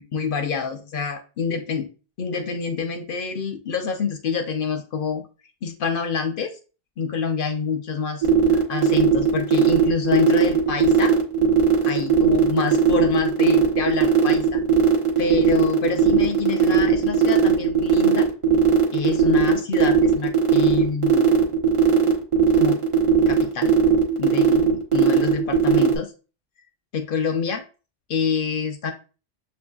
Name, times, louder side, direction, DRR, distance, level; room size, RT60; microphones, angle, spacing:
voice 1, 0.0-1.9 2.2-5.2 5.6-6.6 7.0-11.1 11.8-14.6 15.2-18.3 18.9-21.3 22.5-22.8 23.3-23.8 24.2-26.1 26.9-27.6 28.1-28.9, left 5 dB, 60° left, 6 dB, 0.6 m, -27 dB
sound 1, 8.2-25.9, right 10 dB, 30° right, 0.8 m, -18 dB
6.7 x 2.6 x 2.3 m, 0.35 s
omnidirectional pair, 1.2 m